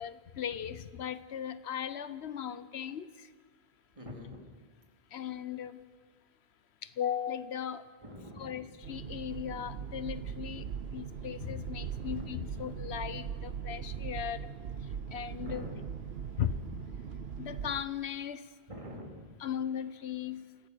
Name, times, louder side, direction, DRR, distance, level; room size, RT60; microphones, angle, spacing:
voice 1, 0.0-3.1 5.1-5.8 7.0-7.8 8.4-10.7 10.9-14.5 15.1-15.7 16.4-16.5 17.4-18.4 19.4-20.4, left 9 dB, 80° left, 14 dB, 1.0 m, -37 dB
voice 2, 4.0-4.4 8.0-8.6 12.0-12.3 15.3-15.8 18.7-19.3, left 1 dB, 30° right, 1 dB, 3.0 m, -45 dB
sound 1, 8.8-17.8, right 7 dB, 70° right, 1.0 m, -40 dB
25.0 x 15.5 x 6.6 m, 1.5 s
omnidirectional pair, 1.1 m